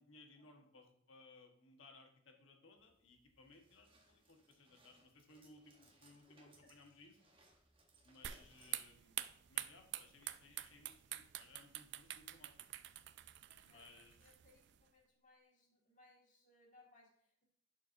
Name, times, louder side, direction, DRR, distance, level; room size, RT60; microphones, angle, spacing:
voice 1, 0.0-7.2 8.0-12.7 13.6-14.4, left 3 dB, 80° left, 3 dB, 1.2 m, -63 dB
sound 1, 2.8-10.1, right 2 dB, 25° right, 0.9 m, -71 dB
voice 2, 6.3-6.7 13.5-17.4, left 2 dB, 40° left, -1 dB, 1.8 m, -68 dB
sound 2, 8.2-14.8, right 13 dB, 60° right, 0.3 m, -47 dB
10.5 x 4.5 x 2.6 m, 0.69 s
head